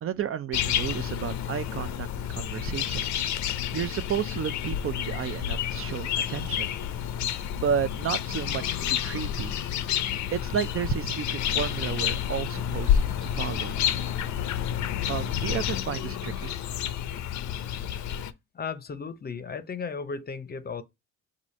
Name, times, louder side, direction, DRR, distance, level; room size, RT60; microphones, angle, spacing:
voice 1, 0.0-3.1 3.7-6.7 7.6-9.6 10.3-13.8 15.1-16.5, right 8 dB, 45° right, 0.5 m, -32 dB
sound 1, 0.5-18.3, left 9 dB, 70° left, 0.6 m, -29 dB
voice 2, 18.5-20.8, left 5 dB, 30° left, 0.6 m, -35 dB
4.8 x 2.5 x 4.2 m
cardioid pair, 90°, 30 cm